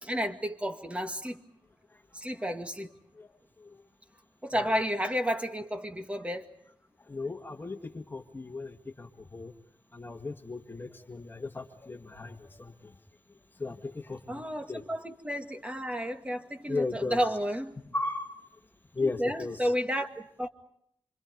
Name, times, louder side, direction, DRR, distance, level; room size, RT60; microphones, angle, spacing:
voice 1, 0.0-1.4 2.1-2.9 4.4-6.5 14.3-17.8 19.0-20.5, equal, 15° right, 2.0 m, -32 dB
voice 2, 7.0-9.5 9.9-13.0 13.6-14.8 16.7-17.2 17.9-18.6 18.9-19.7, left 3 dB, 25° left, 2.0 m, -36 dB
27.0 x 26.0 x 5.3 m
wide cardioid pair, 100°, 9 cm